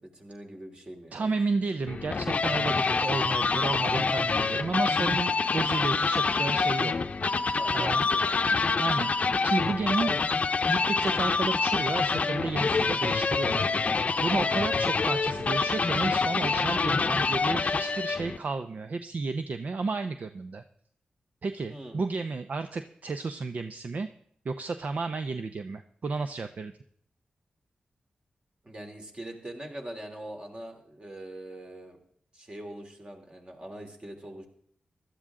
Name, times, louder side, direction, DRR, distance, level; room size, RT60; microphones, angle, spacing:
voice 1, 0.0-1.4 7.5-8.5 21.7-22.0 28.6-32.0 32.3-34.5, right 1 dB, 35° right, 2 dB, 3.0 m, -42 dB
voice 2, 1.1-6.9 7.7-8.1 8.8-9.1 9.4-10.2 10.7-13.7 14.2-20.6 21.4-24.1 24.4-26.7, right 4 dB, 60° right, 9 dB, 0.6 m, -32 dB
sound 1, 1.9-18.4, left 4 dB, 50° left, 0.7 m, -26 dB
16.0 x 12.5 x 3.7 m, 0.64 s
cardioid pair, 70°, 3 cm